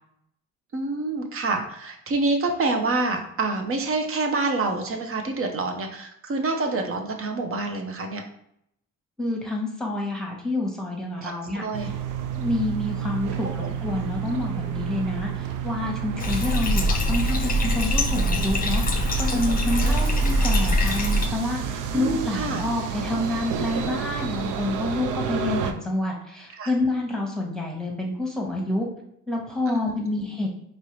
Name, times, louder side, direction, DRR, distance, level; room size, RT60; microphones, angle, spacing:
voice 1, 0.7-8.2 11.2-11.9 13.4-13.7 19.5-20.0 21.9-22.6 26.5-26.7 29.7-29.8, right 3 dB, 45° right, 4 dB, 0.8 m, -27 dB
voice 2, 9.2-11.9 12.3-18.8 19.2-28.9 29.3-30.5, left 2 dB, ahead, -1 dB, 1.2 m, -28 dB
sound 1, 11.7-25.7, right 8 dB, 90° right, 0.5 m, -31 dB
Bathtub (filling or washing), 16.2-21.3, equal, 30° left, 0.7 m, -23 dB
4.5 x 3.0 x 3.1 m, 0.74 s
cardioid pair, 90°, 30 cm